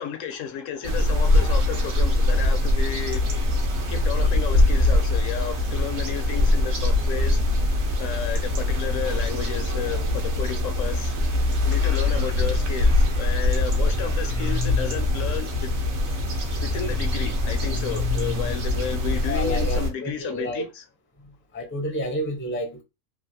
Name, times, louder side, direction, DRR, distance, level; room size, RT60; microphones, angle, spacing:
voice 1, 0.0-3.2 3.9-7.4 8.0-11.1 11.6-15.7 16.6-20.7, left 8 dB, 70° left, 0.9 m, -32 dB
sound 1, 0.8-19.9, left 2 dB, 60° right, 1.0 m, -23 dB
voice 2, 19.3-20.7 21.5-22.8, equal, 20° left, 0.3 m, -29 dB
3.1 x 2.4 x 2.6 m
omnidirectional pair, 1.4 m